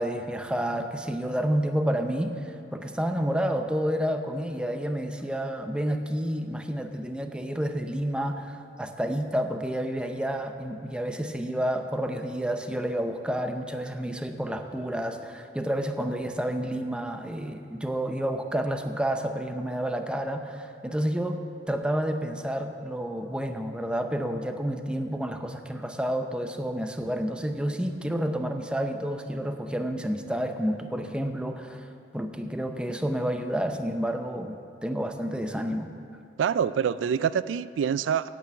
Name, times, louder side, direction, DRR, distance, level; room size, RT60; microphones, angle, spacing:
voice 1, 0.0-35.9, equal, 5° right, 5 dB, 0.6 m, -30 dB
voice 2, 36.4-38.3, right 8 dB, 90° right, 15 dB, 0.3 m, -26 dB
9.2 x 8.4 x 8.6 m, 2.4 s
head